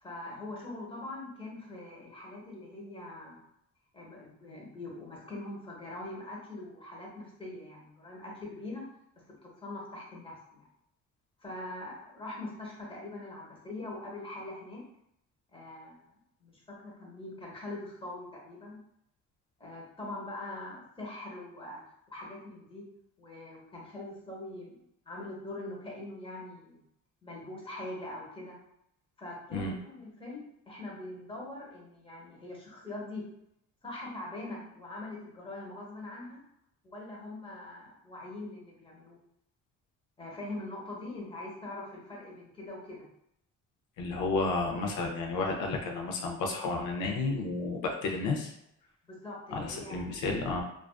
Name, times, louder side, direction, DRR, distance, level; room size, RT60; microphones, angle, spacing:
voice 1, 0.0-3.4 3.9-8.8 9.4-10.7 11.4-14.9 15.5-16.1 16.4-18.8 19.6-21.8 22.1-22.8 23.2-24.8 25.1-26.8 27.2-28.6 29.2-33.2 33.8-36.4 36.8-39.2 40.2-43.1 49.1-50.1, left 2 dB, 20° left, -3 dB, 0.9 m, -42 dB
voice 2, 44.0-48.5 49.5-50.6, left 3 dB, 85° left, 1 dB, 0.5 m, -31 dB
2.4 x 2.3 x 2.3 m, 0.79 s
cardioid pair, 90°, 30 cm